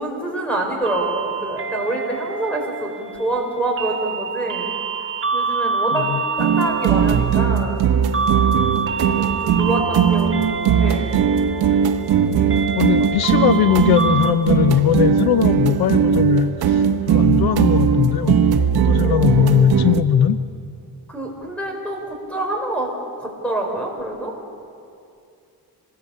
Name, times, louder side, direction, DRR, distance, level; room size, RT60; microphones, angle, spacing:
voice 1, 0.0-4.7 5.3-6.1 6.4-7.8 9.1-11.3 13.0-13.1 19.0-19.5 21.1-22.9 23.2-24.3, right 1 dB, 5° left, 1 dB, 4.8 m, -26 dB
sound 1, 0.8-14.3, right 5 dB, 30° right, 1.6 m, -27 dB
voice 2, 5.9-6.2 10.3-10.4 12.7-18.4 18.7-20.4, left 9 dB, 70° left, 12 dB, 0.8 m, -19 dB
sound 2, 6.4-20.0, right 8 dB, 70° right, 1.2 m, -19 dB
26.5 x 20.0 x 8.6 m, 2.5 s
wide cardioid pair, 165°, 39 cm